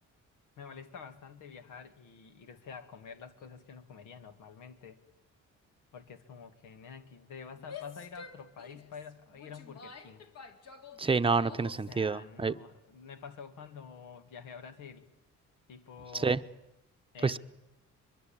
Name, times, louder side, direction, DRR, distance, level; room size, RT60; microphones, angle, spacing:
voice 1, 0.6-5.0 5.9-10.3 11.9-15.0 15.7-16.4 17.1-17.4, left 6 dB, 85° left, 9 dB, 2.0 m, -48 dB
Female speech woman speaking / Yell, 7.6-11.9, left 5 dB, 55° left, 2.5 m, -49 dB
voice 2, 11.0-12.5 16.2-16.4 17.2-17.4, right 4 dB, 20° right, 10 dB, 0.8 m, -28 dB
24.5 x 22.0 x 8.7 m, 0.97 s
cardioid pair, 90°, 30 cm